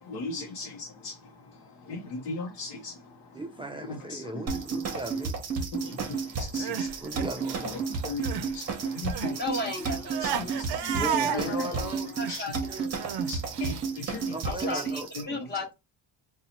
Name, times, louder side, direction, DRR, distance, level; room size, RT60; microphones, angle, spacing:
voice 1, 0.0-1.3 1.9-3.0 3.9-4.4 5.7-6.9 7.7-9.6 10.2-11.0 11.3-11.4 12.3-12.5 12.9-14.3 14.7-14.8 15.2-15.4, left 3 dB, 65° left, 0.8 m, -38 dB
voice 2, 3.3-5.4 5.8-6.1 7.0-7.9 11.0-12.1 14.3-15.1, right 1 dB, 15° right, 0.4 m, -37 dB
sound 1, 4.5-15.2, right 5 dB, 35° right, 0.9 m, -32 dB
Crying sobbing, 6.4-8.5 8.8-13.8, right 9 dB, 60° right, 0.5 m, -34 dB
voice 3, 9.2-11.6 12.2-12.9 14.4-15.7, left 1 dB, 25° left, 1.1 m, -36 dB
2.8 x 2.3 x 4.0 m
cardioid pair, 145°, 44 cm